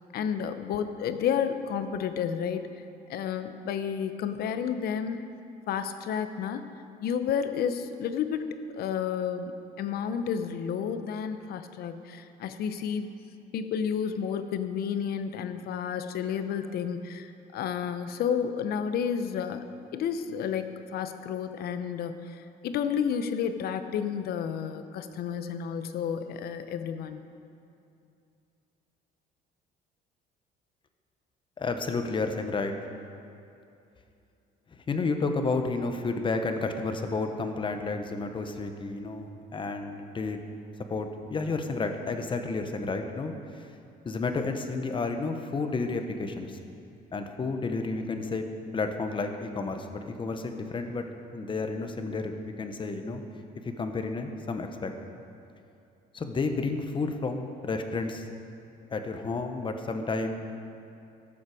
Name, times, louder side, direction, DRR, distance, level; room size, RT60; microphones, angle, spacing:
voice 1, 0.1-2.7 3.1-5.2 5.7-6.6 7.0-9.5 9.8-13.1 13.5-19.6 19.9-27.2, left 7 dB, 65° left, 9 dB, 0.7 m, -31 dB
voice 2, 31.6-32.7 34.9-40.4 40.9-43.7 44.0-46.6 47.1-48.4 48.7-51.0 51.3-53.2 53.6-54.9 56.1-58.2 58.9-60.7, left 3 dB, 30° left, 6 dB, 0.9 m, -31 dB
14.0 x 7.3 x 4.8 m, 2.7 s
cardioid pair, 110°, 17 cm